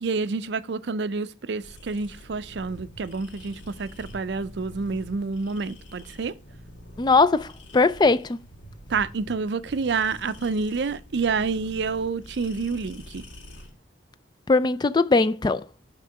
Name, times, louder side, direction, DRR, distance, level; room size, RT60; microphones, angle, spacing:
voice 1, 0.0-6.3 8.9-13.3, right 4 dB, 65° right, 0.5 m, -28 dB
sound 1, 1.6-13.7, equal, 80° left, 2.3 m, -46 dB
voice 2, 7.0-7.5 7.7-8.4 14.5-15.6, left 3 dB, 25° left, 0.3 m, -20 dB
9.7 x 3.7 x 5.8 m
head